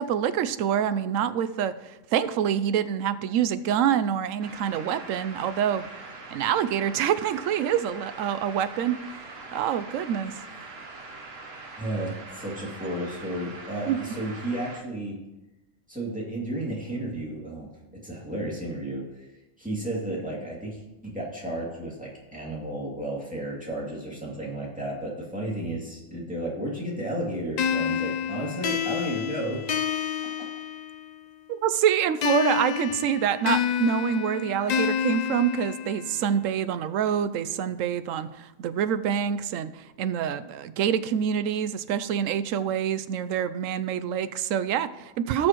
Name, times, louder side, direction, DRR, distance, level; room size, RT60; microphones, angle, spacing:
voice 1, 0.0-5.9 6.3-9.0 9.5-10.3 13.9-14.0 31.5-45.5, right 9 dB, 85° right, 13 dB, 1.0 m, -26 dB
sound 1, 4.4-14.8, right 3 dB, 55° right, 1.3 m, -43 dB
voice 2, 11.8-15.2 15.9-19.0 19.6-30.0, right 1 dB, 5° right, -4 dB, 2.6 m, -33 dB
sound 2, 27.6-31.2 32.2-36.2, left 8 dB, 85° left, 0.3 m, -29 dB
17.5 x 6.4 x 3.0 m, 0.99 s
omnidirectional pair, 1.3 m